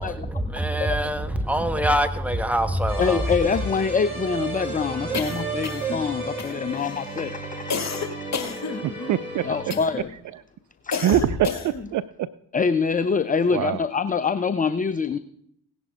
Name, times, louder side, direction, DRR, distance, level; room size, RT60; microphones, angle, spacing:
voice 1, 0.0-3.4, equal, 5° right, 1.3 m, -24 dB
sound 1, 2.9-10.0, right 4 dB, 85° right, 5.0 m, -33 dB
voice 2, 3.0-8.7 9.4-10.1 10.8-11.1 12.5-15.2, left 5 dB, 20° left, 0.5 m, -25 dB
sound 2, 5.1-6.0 6.4-6.9 7.7-9.2 9.7-10.1 10.9-11.9, left 5 dB, 35° left, 1.9 m, -30 dB
voice 3, 8.8-9.5 11.0-12.3 13.5-13.8, right 12 dB, 40° right, 0.5 m, -24 dB
17.0 x 11.0 x 3.6 m
figure-of-eight pair, 45°, 48 cm